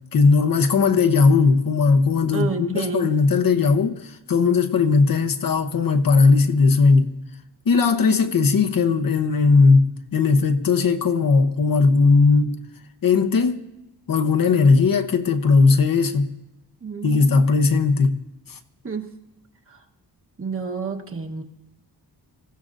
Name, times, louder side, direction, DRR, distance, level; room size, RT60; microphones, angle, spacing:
voice 1, 0.1-7.1 7.7-12.6 13.0-13.6 14.1-16.3 17.0-18.2 18.5-18.6, left 4 dB, 55° left, 0.9 m, -18 dB
voice 2, 2.3-3.1 16.8-17.4 18.8-19.1 19.7-19.8 20.4-21.4, right 5 dB, 30° right, 1.2 m, -29 dB
27.0 x 15.0 x 2.6 m
wide cardioid pair, 150°, 41 cm